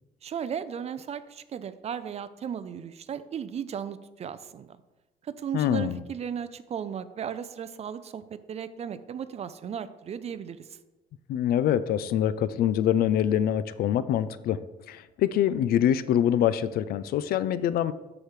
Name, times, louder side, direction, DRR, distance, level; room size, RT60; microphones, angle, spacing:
voice 1, 0.2-4.7 5.2-10.8, right 8 dB, 40° right, 13 dB, 0.5 m, -36 dB
voice 2, 5.5-6.0 11.3-14.6 14.9-17.9, left 10 dB, 65° left, 15 dB, 0.4 m, -25 dB
12.5 x 4.9 x 3.2 m, 1.1 s
cardioid pair, 110°, 17 cm